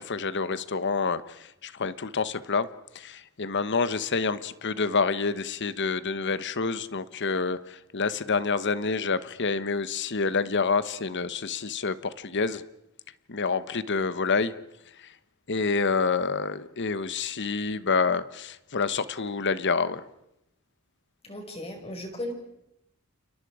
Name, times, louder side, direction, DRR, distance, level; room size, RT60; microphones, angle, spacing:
voice 1, 0.0-2.7 2.9-12.6 13.3-14.5 15.0-15.1 15.5-20.0, left 4 dB, 55° left, 14 dB, 1.1 m, -28 dB
voice 2, 21.2-22.3, left 1 dB, 25° left, 3 dB, 5.8 m, -36 dB
29.5 x 29.5 x 5.0 m, 0.85 s
head